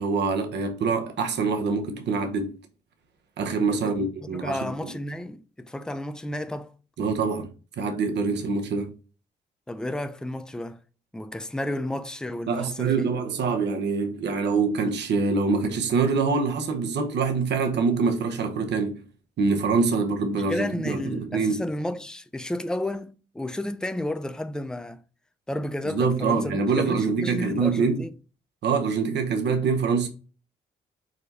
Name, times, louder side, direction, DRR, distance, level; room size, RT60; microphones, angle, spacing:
voice 1, 0.0-2.5 3.4-4.6 7.0-7.5 7.8-8.9 12.5-19.0 19.4-21.6 25.9-28.0 28.6-30.1, right 4 dB, 70° right, 0.8 m, -25 dB
voice 2, 3.7-6.7 9.7-10.8 11.1-13.1 20.5-25.0 25.5-28.2, left 1 dB, 5° left, 0.4 m, -32 dB
5.0 x 2.2 x 4.0 m
supercardioid pair, 55°, 19 cm